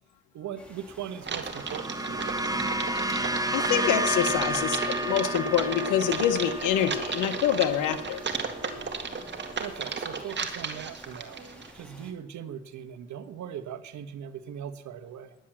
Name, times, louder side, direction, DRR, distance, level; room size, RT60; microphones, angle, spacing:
voice 1, 0.3-2.4 9.6-11.4 11.7-15.4, right 9 dB, 70° right, 10 dB, 1.3 m, -40 dB
sound 1, 0.6-12.1, equal, 5° left, 3.4 m, -50 dB
Typing, 1.2-11.7, right 5 dB, 35° right, 1.9 m, -35 dB
sound 2, 1.3-9.7, right 1 dB, 10° right, 0.9 m, -32 dB
voice 2, 3.5-8.2, left 10 dB, 85° left, 7 dB, 1.3 m, -26 dB
11.0 x 10.5 x 7.4 m, 0.85 s
cardioid pair, 90°, 30 cm